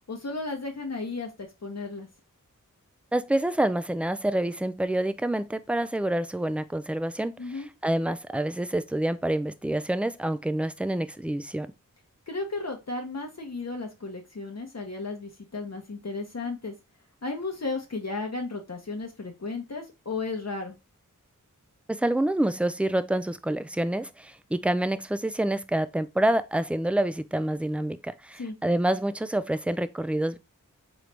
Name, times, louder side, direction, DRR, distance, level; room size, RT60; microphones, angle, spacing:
voice 1, 0.1-2.1 7.4-7.7 12.3-16.7 17.2-20.8 28.4-28.5, left 3 dB, 50° left, 0.9 m, -34 dB
voice 2, 3.1-11.7 21.9-30.4, right 1 dB, 5° right, 0.4 m, -27 dB
3.9 x 3.2 x 3.3 m
wide cardioid pair, 40°, 33 cm